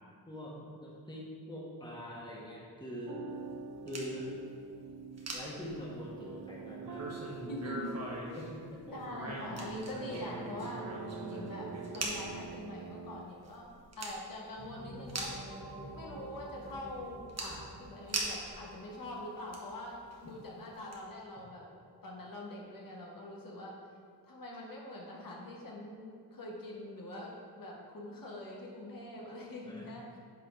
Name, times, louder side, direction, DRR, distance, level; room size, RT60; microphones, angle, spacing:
voice 1, 0.3-3.2 3.8-4.4 5.3-7.4 8.3-9.0 29.7-29.9, left 1 dB, 10° left, -4 dB, 1.3 m, -43 dB
sound 1, 3.1-13.3, right 5 dB, 65° right, 0.5 m, -46 dB
sound 2, 3.3-4.1 4.8-4.9 5.1-6.2 6.8-8.5 8.9-12.6 13.0-13.1 13.4-14.2 14.5-14.6 15.1-15.6 16.2-16.3 16.7-18.7 19.1-19.8 20.1-20.3 20.9-21.0, right 2 dB, 40° right, 1.2 m, -41 dB
voice 2, 7.5-7.9 8.9-10.9 11.2-13.7 14.0-15.6 15.9-21.7 22.0-23.7 24.3-30.2, left 1 dB, 55° left, -2 dB, 1.3 m, -44 dB
sound 3, 14.6-24.1, right 1 dB, 15° right, 1.3 m, -51 dB
8.2 x 4.2 x 5.1 m, 2.2 s
wide cardioid pair, 130°, 39 cm